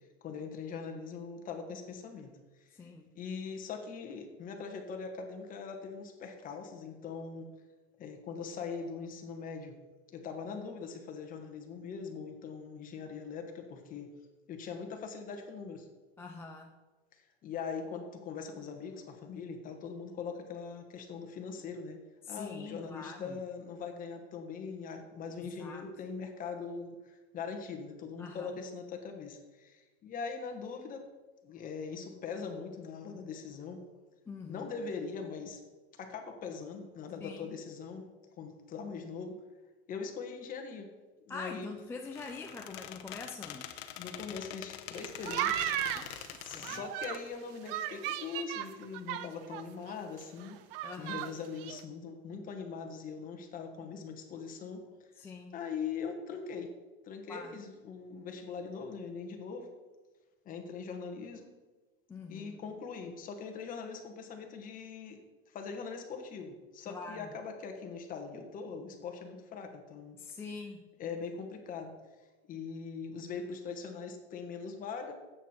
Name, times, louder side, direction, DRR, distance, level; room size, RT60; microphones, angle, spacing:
voice 1, 0.2-2.3 2.6-2.8 3.1-7.5 8.0-9.8 10.1-14.1 14.5-15.9 17.2-22.0 22.3-31.1 31.4-33.8 34.5-35.6 35.9-38.1 38.4-39.4 39.9-40.9 41.2-41.7 44.0-50.6 51.0-54.8 55.5-56.7 57.0-59.7 60.4-61.5 62.3-70.2 71.0-71.9 72.5-75.1, left 5 dB, 25° left, 4 dB, 1.5 m, -41 dB
voice 2, 2.7-3.1 16.2-16.7 22.2-23.4 25.6-25.8 28.2-28.5 34.3-34.7 37.2-37.5 41.3-43.7 45.9-46.8 50.8-51.3 55.2-55.5 57.3-57.6 62.1-62.6 66.9-67.3 70.2-70.9, left 4 dB, 10° left, 1 dB, 0.4 m, -44 dB
Squeak, 42.0-47.2, left 11 dB, 80° left, 1.1 m, -45 dB
sound 1, 44.9-47.2 47.7-49.6 49.9-50.0 50.2-51.3 51.6-51.8, right 12 dB, 60° right, 0.8 m, -35 dB
13.0 x 8.5 x 4.5 m, 1.2 s
supercardioid pair, 165°, 31 cm